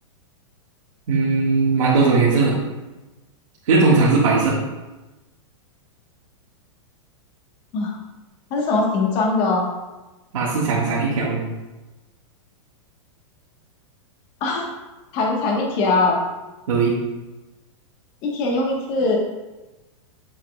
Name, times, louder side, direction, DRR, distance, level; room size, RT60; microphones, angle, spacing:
voice 1, 1.1-2.5 3.7-4.6 10.3-11.4 16.7-17.0, right 4 dB, 80° right, -8 dB, 1.8 m, -18 dB
voice 2, 8.5-9.7 14.4-14.7 15.1-16.2 18.2-19.2, left 3 dB, 30° left, 0 dB, 1.3 m, -21 dB
7.5 x 7.3 x 2.3 m, 1.1 s
supercardioid pair, 165°, 17 cm